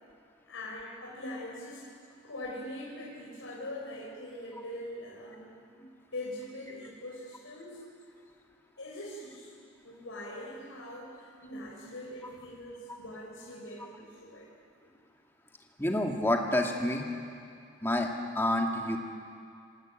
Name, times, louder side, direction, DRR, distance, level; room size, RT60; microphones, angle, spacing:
voice 1, 0.5-1.9 2.2-7.8 8.8-9.5 9.8-14.5, left 1 dB, 85° left, -4 dB, 4.0 m, -42 dB
voice 2, 15.8-17.1 17.8-18.1 18.3-19.0, left 1 dB, 10° left, 1 dB, 2.0 m, -28 dB
27.0 x 16.5 x 8.9 m, 2.4 s
head